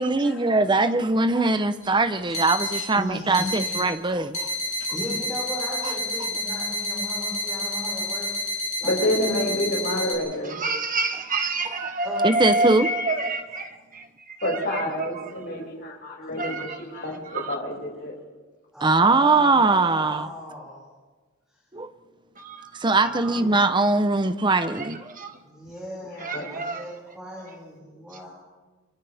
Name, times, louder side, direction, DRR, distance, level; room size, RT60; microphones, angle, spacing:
voice 1, 0.0-4.5 6.2-6.3 11.1-11.2 11.6-11.9 12.2-12.9 18.8-20.3 21.7-21.9 22.7-25.1, right 3 dB, 25° right, 0.9 m, -21 dB
sound 1, 1.8-1.9 2.3-2.9 3.3-3.8 4.3-10.1, left 1 dB, 35° left, 4.3 m, -29 dB
voice 2, 2.7-3.7 4.6-8.5 8.8-9.5 12.0-12.7 18.7-20.8 23.0-23.4 25.4-28.3, equal, 5° right, 6.0 m, -36 dB
voice 3, 8.8-10.6 14.4-18.1 26.2-26.5, left 1 dB, 55° left, 6.4 m, -28 dB
voice 4, 10.6-13.7 14.4-15.3 16.4-16.7 17.3-17.5 22.4-22.6 25.2-25.3 26.2-26.8, right 2 dB, 40° right, 1.7 m, -27 dB
29.5 x 24.5 x 3.6 m
head